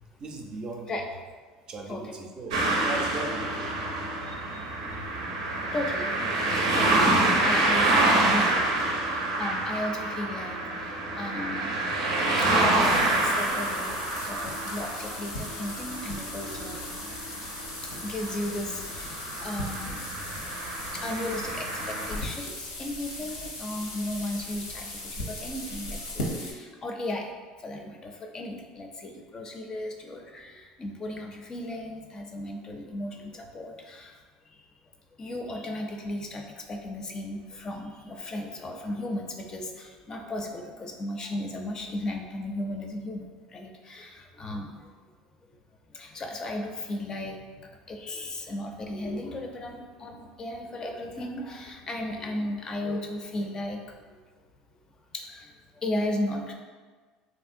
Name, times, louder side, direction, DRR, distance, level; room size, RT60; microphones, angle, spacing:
voice 1, 0.2-0.9 1.7-3.9, right 3 dB, 35° right, 2 dB, 0.4 m, -38 dB
voice 2, 1.9-2.3 4.2-4.8 5.7-6.2 6.5-11.7 12.4-16.8 17.8-20.1 20.3-20.4 20.9-27.3 27.6-34.7 35.2-44.9 45.9-54.2 55.1-56.5, left 1 dB, 30° left, 3 dB, 0.4 m, -35 dB
sound 1, 2.5-22.2, right 2 dB, 90° right, 0.5 m, -27 dB
sound 2, 12.8-26.5, left 1 dB, 85° left, 0.7 m, -38 dB
3.1 x 2.6 x 2.5 m, 1.4 s
supercardioid pair, 100°, 2 cm